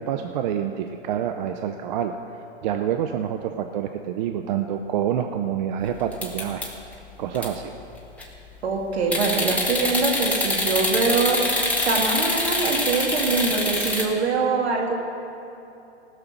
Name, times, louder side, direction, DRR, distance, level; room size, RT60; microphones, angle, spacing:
voice 1, 0.0-2.2 2.6-6.7 7.2-7.7, right 9 dB, 40° right, 6 dB, 0.6 m, -27 dB
sound 1, 6.1-6.9 7.4-7.5 7.9-8.4 9.1-14.0, left 1 dB, 5° left, 1.4 m, -25 dB
voice 2, 8.6-11.4 11.8-14.9, right 4 dB, 65° right, 0 dB, 2.5 m, -24 dB
19.0 x 6.7 x 6.0 m, 2.9 s
hypercardioid pair, 120°, 34 cm